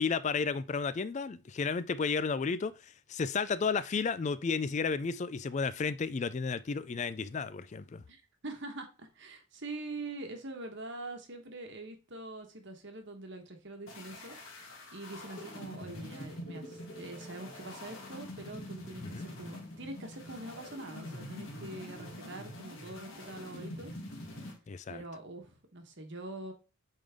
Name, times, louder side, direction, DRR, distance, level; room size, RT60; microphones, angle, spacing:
voice 1, 0.0-8.0 19.0-19.3 24.7-25.0, left 5 dB, 30° left, 0.3 m, -32 dB
voice 2, 8.1-23.9 24.9-26.5, right 2 dB, 50° right, 1.3 m, -44 dB
sound 1, 13.9-24.5, left 1 dB, 60° left, 2.0 m, -45 dB
8.7 x 3.7 x 3.5 m
head